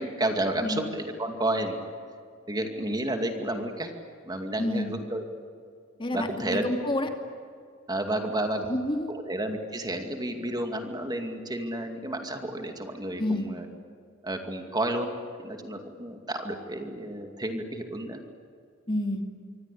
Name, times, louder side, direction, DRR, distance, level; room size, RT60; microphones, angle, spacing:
voice 1, 0.0-1.8 2.5-3.9 4.3-5.2 6.1-6.6 7.9-8.7 9.1-13.7 14.2-15.1 15.4-18.2, right 1 dB, 20° right, 5 dB, 2.4 m, -31 dB
voice 2, 4.6-4.9 6.0-7.1 8.6-9.1 13.2-13.5 18.9-19.2, left 1 dB, 25° left, 4 dB, 2.5 m, -29 dB
27.0 x 24.5 x 8.5 m, 2.3 s
head